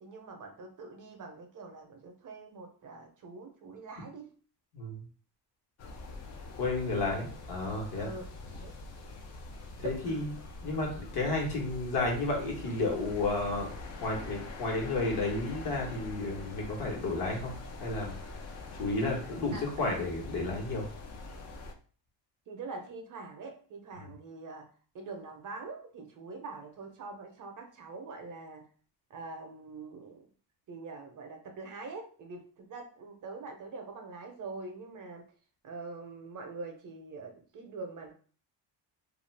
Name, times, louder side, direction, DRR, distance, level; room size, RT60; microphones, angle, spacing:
voice 1, 0.0-4.3 7.9-8.7 9.8-10.3 19.5-20.0 22.5-24.7 24.9-28.7 29.1-30.3 30.7-35.3 35.6-38.1, right 3 dB, 45° right, 4 dB, 0.6 m, -44 dB
sound 1, 5.8-21.7, left 2 dB, 40° left, 0.4 m, -44 dB
voice 2, 6.6-8.1 9.8-10.3 10.6-13.7 14.0-17.5 17.8-18.2 18.7-20.9, left 2 dB, 60° left, -1 dB, 1.2 m, -32 dB
2.4 x 2.3 x 3.2 m, 0.42 s
cardioid pair, 125°, 45 cm